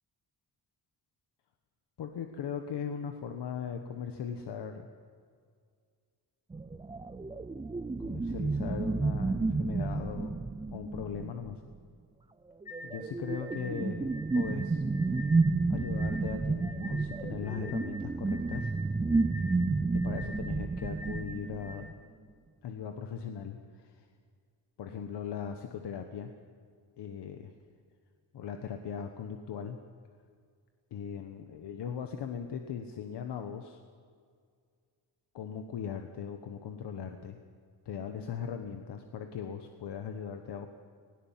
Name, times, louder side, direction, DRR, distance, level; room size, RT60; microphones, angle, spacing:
voice 1, 2.0-4.9 8.0-10.4 10.7-11.6 12.8-14.8 15.7-18.7 19.9-21.9 22.6-24.1 24.8-26.3 27.0-27.5 28.3-29.8 30.9-33.8 35.3-37.4 37.8-40.7, left 7 dB, 90° left, 6 dB, 1.4 m, -39 dB
sound 1, 6.5-11.7 12.6-21.9, right 3 dB, 15° right, 0.5 m, -31 dB
sound 2, 12.7-21.8, left 1 dB, 55° left, 6.4 m, -47 dB
20.0 x 17.5 x 7.4 m, 2.1 s
wide cardioid pair, 145°, 40 cm